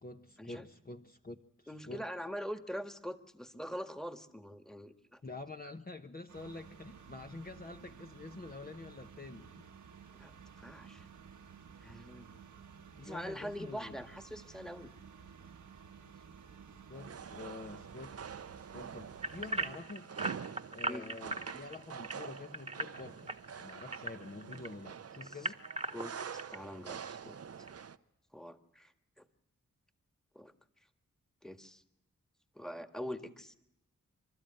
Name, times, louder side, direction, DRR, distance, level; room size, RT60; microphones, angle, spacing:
voice 1, 0.0-2.0 5.2-9.7 13.0-14.0 16.9-18.2 18.5-20.1 20.7-23.3 23.6-25.6, left 3 dB, 30° left, 5 dB, 1.0 m, -47 dB
voice 2, 1.7-5.2 10.1-11.1 11.8-12.3 13.0-14.9 20.9-21.1 25.2-25.4 25.9-27.4 28.3-29.3 30.4-30.5 31.4-31.8 32.6-33.5, equal, ahead, 7 dB, 1.7 m, -44 dB
sound 1, 6.3-19.7, right 6 dB, 85° right, 1.4 m, -54 dB
sound 2, 16.9-28.0, right 7 dB, 55° right, 0.8 m, -46 dB
sound 3, 19.2-24.7 25.1-26.6 27.1-27.2 27.7-27.8, right 2 dB, 20° right, 1.4 m, -38 dB
29.0 x 12.5 x 9.0 m, 0.87 s
cardioid pair, 40°, 30 cm